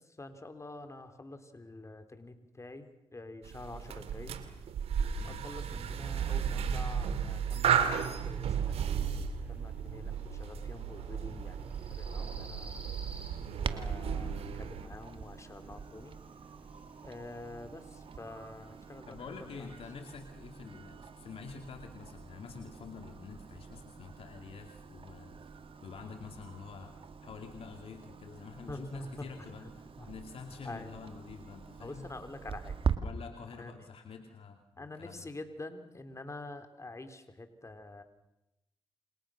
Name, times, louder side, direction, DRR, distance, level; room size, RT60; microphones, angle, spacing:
voice 1, 0.0-4.3 5.2-12.7 13.6-16.1 17.0-19.7 28.7-29.5 30.0-30.1 30.6-30.9 31.8-32.8 33.6-33.9 34.8-38.0, left 2 dB, 30° left, 8 dB, 3.7 m, -47 dB
sound 1, 3.4-14.9, right 7 dB, 90° right, 2.4 m, -34 dB
sound 2, 7.6-19.0, right 1 dB, 15° right, 7.5 m, -56 dB
Clock, 13.6-33.0, right 6 dB, 65° right, 2.1 m, -43 dB
voice 2, 19.1-25.4 25.8-27.0 27.2-32.1 33.0-35.3, left 5 dB, 70° left, 5 dB, 2.6 m, -47 dB
30.0 x 27.0 x 6.5 m, 0.88 s
cardioid pair, 55°, 10 cm